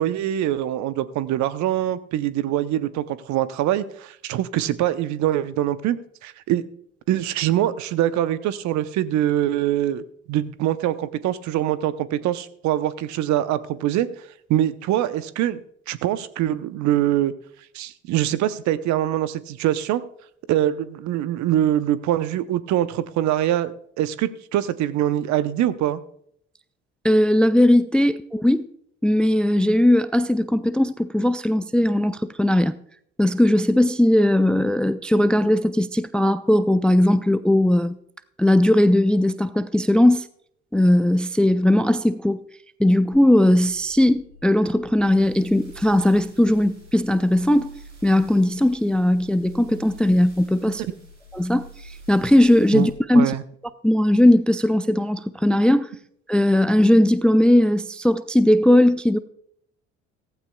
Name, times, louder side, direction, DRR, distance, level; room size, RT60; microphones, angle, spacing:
voice 1, 0.0-6.6 7.1-14.1 14.5-17.3 17.7-20.0 20.5-26.0 52.7-52.9 53.1-53.4, right 12 dB, 55° right, 0.8 m, -23 dB
voice 2, 27.0-28.7 29.0-32.7 33.2-38.0 38.4-40.2 40.7-42.4 42.8-47.7 48.0-50.8 51.3-51.6 52.1-53.3 53.8-55.9 56.3-59.2, left 1 dB, 5° left, 0.4 m, -18 dB
sound 1, 43.1-52.9, right 1 dB, 90° right, 3.7 m, -46 dB
15.5 x 15.0 x 2.3 m
hypercardioid pair, 55°, 34 cm